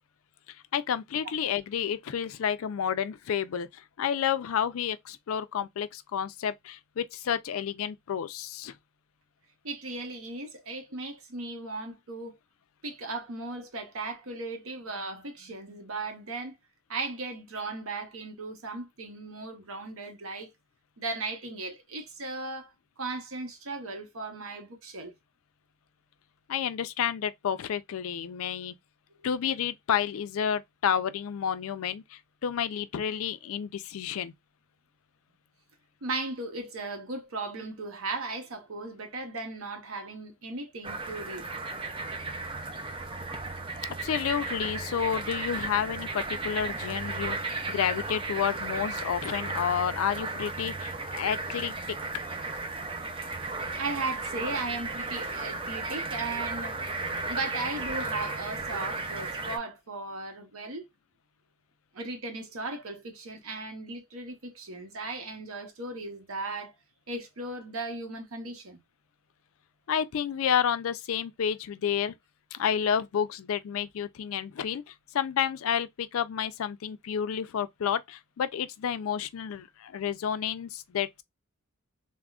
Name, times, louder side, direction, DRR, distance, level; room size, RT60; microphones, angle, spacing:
voice 1, 0.7-8.7 26.5-28.7 29.2-34.3 44.0-52.0 69.9-72.1 72.5-81.2, left 8 dB, 75° left, 0.4 m, -30 dB
voice 2, 9.6-12.4 12.8-16.6 16.9-20.5 21.0-22.7 23.0-25.1 36.0-41.6 53.8-56.8 57.2-60.9 61.9-66.7 67.1-68.8, right 3 dB, 75° right, 0.8 m, -36 dB
sound 1, 40.8-59.6, right 3 dB, 25° right, 0.4 m, -35 dB
3.5 x 2.1 x 2.3 m
head